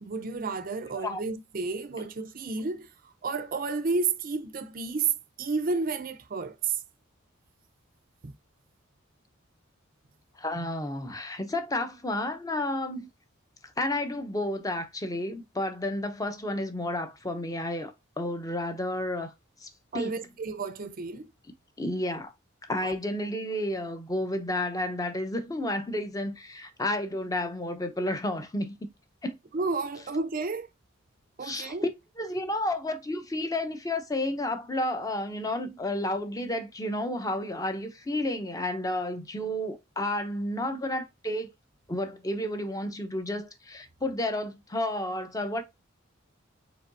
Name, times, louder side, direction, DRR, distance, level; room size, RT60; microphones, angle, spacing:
voice 1, 0.0-2.9 3.2-6.8 8.2-8.3 19.9-21.3 22.8-22.9 29.5-30.7 31.4-31.8, right 4 dB, 45° right, 0.5 m, -31 dB
voice 2, 10.4-13.1 13.8-17.9 18.2-19.3 19.6-19.7 19.9-20.2 21.8-22.3 22.6-28.9 29.2-29.4 31.4-31.9 32.2-41.5 41.9-45.6, left 1 dB, 15° left, 0.7 m, -31 dB
5.0 x 3.8 x 2.6 m
head